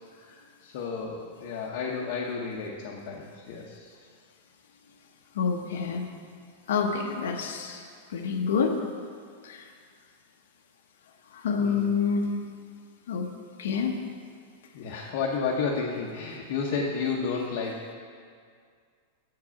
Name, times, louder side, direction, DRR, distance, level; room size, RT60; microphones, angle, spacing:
voice 1, 0.6-3.9 11.6-11.9 14.7-17.9, left 5 dB, 50° left, -2 dB, 0.7 m, -31 dB
voice 2, 5.3-6.1 6.7-7.8 8.1-8.8 9.4-9.7 11.3-12.3 13.1-13.3 13.6-14.0, left 5 dB, 85° left, 2 dB, 0.8 m, -27 dB
7.6 x 4.8 x 5.7 m, 2.1 s
supercardioid pair, 170°, 0 cm